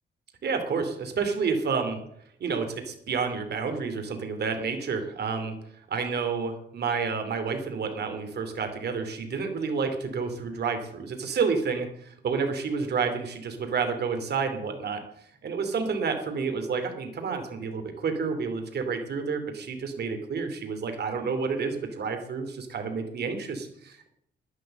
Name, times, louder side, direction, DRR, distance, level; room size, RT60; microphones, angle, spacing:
voice 1, 0.4-2.0 2.4-5.5 5.9-15.0 15.4-24.1, right 5 dB, 60° right, 6 dB, 2.6 m, -30 dB
11.0 x 10.5 x 7.6 m, 0.71 s
cardioid pair, 130°, 19 cm